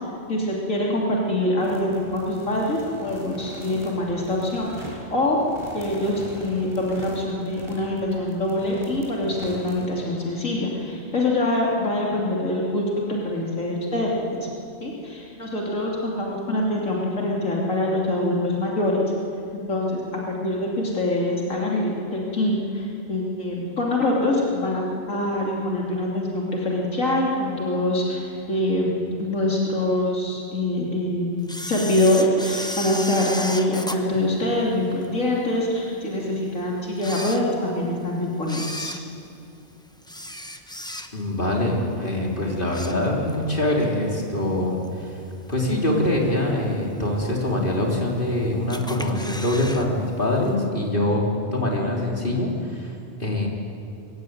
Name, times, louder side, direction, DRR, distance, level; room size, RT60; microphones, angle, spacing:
voice 1, 0.3-5.4 5.7-14.5 14.8-19.0 19.5-28.2 28.5-38.9, left 1 dB, 85° left, -3 dB, 3.3 m, -24 dB
sound 1, 1.6-9.9, equal, 25° right, 4.5 m, -41 dB
Camera, 31.5-35.1 35.6-35.7 36.4-36.5 36.9-37.9 38.4-41.4 41.8-42.1 42.4-43.5 43.8-43.9 44.8-44.9 45.5-45.9 46.3-46.4 46.6-46.7 46.9-47.0 47.8-48.3 48.7-49.9 50.1-50.2 50.5-50.6, equal, 5° left, 0.8 m, -34 dB
voice 2, 41.1-45.2 45.5-52.9 53.2-53.5, left 1 dB, 40° left, -1 dB, 3.6 m, -24 dB
22.0 x 16.0 x 9.4 m, 2.6 s
omnidirectional pair, 1.3 m